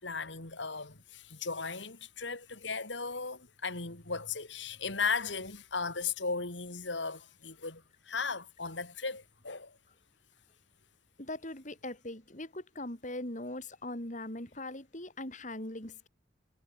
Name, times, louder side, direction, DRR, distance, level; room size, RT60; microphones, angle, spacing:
voice 1, 0.0-9.8, left 4 dB, 80° left, 3.9 m, -36 dB
voice 2, 11.2-16.1, left 1 dB, 40° left, 4.8 m, -40 dB
head